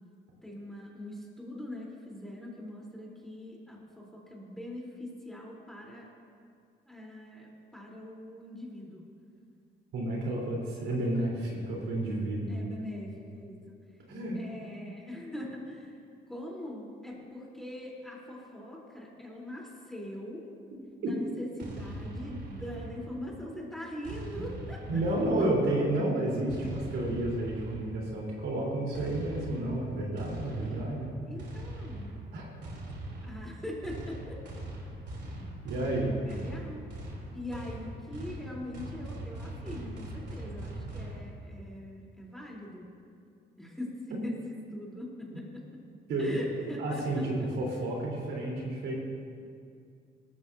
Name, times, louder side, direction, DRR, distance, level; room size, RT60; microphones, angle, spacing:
voice 1, 0.4-6.1 6.9-9.0 12.5-13.8 14.3-15.9 16.3-20.5 21.0-25.0 30.5-30.9 31.3-32.2 33.2-34.4 36.3-36.8 37.3-42.9 43.6-45.4 46.2-47.5, left 1 dB, ahead, -3 dB, 3.8 m, -42 dB
voice 2, 9.9-12.6 14.1-14.4 24.3-24.4 24.9-31.1 32.3-32.4 35.4-36.2 46.1-49.0, right 1 dB, 80° right, -3 dB, 3.9 m, -31 dB
sound 1, 21.6-23.4 24.0-25.8 26.5-28.1 28.9-41.2, right 1 dB, 60° right, 3.4 m, -41 dB
18.5 x 14.0 x 2.8 m, 2.3 s
cardioid pair, 90°, 20 cm